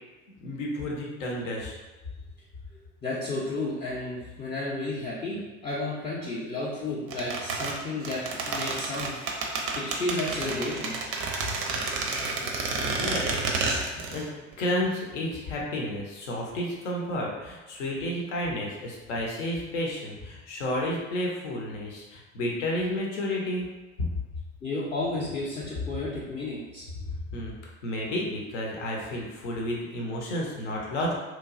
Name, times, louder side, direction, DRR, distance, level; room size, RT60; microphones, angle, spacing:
voice 1, 0.4-1.8 12.3-12.5 13.0-23.7 24.0-24.1 27.3-27.5 27.8-31.1, left 1 dB, 65° left, -2 dB, 0.8 m, -31 dB
voice 2, 3.0-9.1 9.7-11.1 24.6-27.1, left 2 dB, 15° left, -8 dB, 0.5 m, -32 dB
sound 1, 7.1-14.3 14.5-14.6, right 3 dB, 35° right, 0.5 m, -30 dB
2.9 x 2.2 x 2.4 m, 1.1 s
figure-of-eight pair, 70°, 38 cm